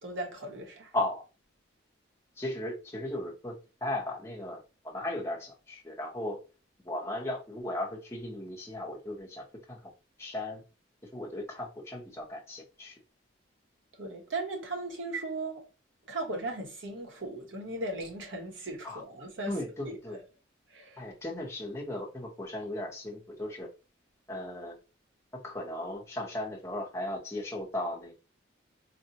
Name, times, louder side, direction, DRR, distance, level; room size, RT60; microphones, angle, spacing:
voice 1, 0.0-0.9 14.0-15.6 16.1-19.5 20.1-20.2 20.7-21.0, right 2 dB, 75° right, 0.9 m, -37 dB
voice 2, 2.4-3.5 3.8-6.4 6.8-9.9 10.2-10.6 11.1-12.9 18.8-19.0 19.5-20.2 21.0-23.7 24.3-24.8 25.4-28.1, left 1 dB, 15° left, 0.7 m, -36 dB
4.2 x 2.0 x 2.7 m
head